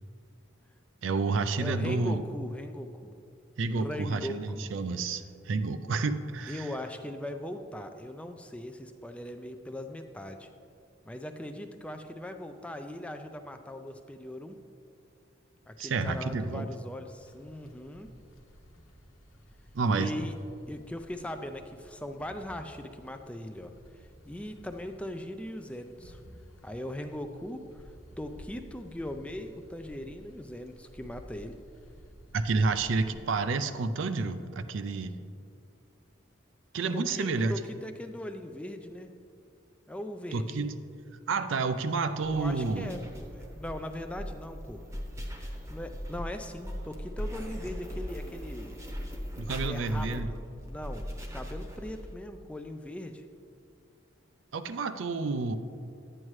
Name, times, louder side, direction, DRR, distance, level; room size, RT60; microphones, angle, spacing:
voice 1, 1.0-2.2 3.6-6.7 15.8-16.6 19.7-20.1 32.3-35.2 36.7-37.5 40.3-40.7 41.3-43.0 49.4-50.3 54.5-55.5, right 3 dB, 70° right, 11 dB, 0.4 m, -29 dB
voice 2, 1.6-3.1 3.7-4.7 6.5-10.5 11.1-14.6 15.7-18.1 19.9-20.3 20.7-26.2 26.6-31.6 36.9-39.1 39.9-40.7 42.3-44.8 45.3-48.8 49.6-53.2, left 1 dB, 5° left, 6 dB, 0.3 m, -40 dB
sound 1, 17.1-33.3, equal, 85° left, 1.1 m, -53 dB
sound 2, 42.2-52.1, equal, 15° right, 0.8 m, -39 dB
11.0 x 8.9 x 3.1 m, 2.5 s
head